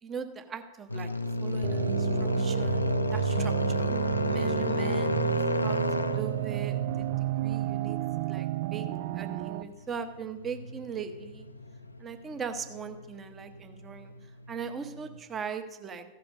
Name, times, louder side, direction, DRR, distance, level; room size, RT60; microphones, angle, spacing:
voice 1, 0.0-1.1 1.4-3.9 4.3-7.1 7.4-8.9 9.1-11.5 12.0-14.1 14.5-16.0, right 6 dB, 25° right, 8 dB, 0.9 m, -40 dB
sound 1, 0.9-15.2, left 1 dB, 85° left, 0.4 m, -32 dB
sound 2, 1.6-9.6, right 15 dB, 50° right, 0.3 m, -32 dB
14.5 x 5.9 x 5.3 m, 1.1 s
figure-of-eight pair, 90°, 0 cm